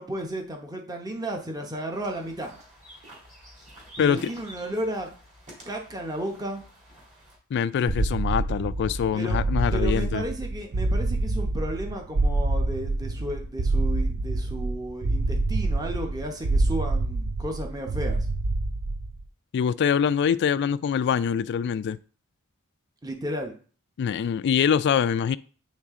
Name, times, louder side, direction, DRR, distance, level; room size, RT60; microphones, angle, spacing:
voice 1, 0.0-2.5 4.0-5.1 5.7-6.6 9.1-9.4 9.7-18.3 23.0-23.5, right 1 dB, 20° right, 0.8 m, -33 dB
sound 1, 1.9-7.4, right 1 dB, 35° right, 2.1 m, -49 dB
voice 2, 7.5-10.2 19.5-22.0 24.0-25.4, left 7 dB, 55° left, 0.3 m, -24 dB
sound 2, 7.9-19.2, right 2 dB, 60° right, 0.5 m, -26 dB
8.5 x 3.2 x 3.6 m
head